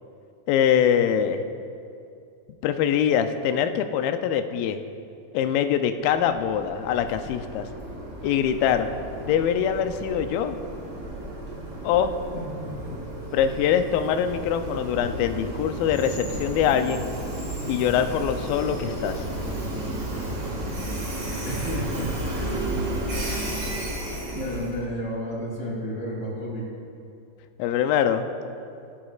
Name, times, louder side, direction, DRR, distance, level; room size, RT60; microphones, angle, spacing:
voice 1, 0.5-1.4 2.6-4.8 5.3-7.7 8.2-8.9 9.2-10.6 11.8-12.2 13.3-17.1 17.7-19.3 27.6-28.3, left 9 dB, 80° left, 8 dB, 2.2 m, -23 dB
Train, 6.0-24.8, right 1 dB, 30° right, 1.5 m, -33 dB
voice 2, 12.5-12.9 21.4-22.6 24.3-26.6, equal, 25° left, -4 dB, 2.5 m, -32 dB
19.0 x 11.5 x 2.4 m, 2.5 s
omnidirectional pair, 4.5 m